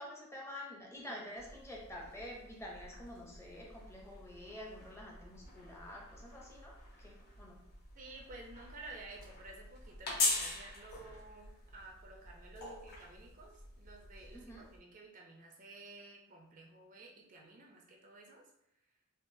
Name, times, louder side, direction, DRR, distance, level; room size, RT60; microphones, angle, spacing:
voice 1, 0.0-6.7 7.0-7.6 14.3-14.7, left 1 dB, 10° left, -2 dB, 0.6 m, -48 dB
sound 1, 1.3-14.8, left 2 dB, 50° left, 0.9 m, -43 dB
voice 2, 8.0-18.5, right 2 dB, 35° right, 1 dB, 0.4 m, -53 dB
3.6 x 2.3 x 2.5 m, 0.79 s
head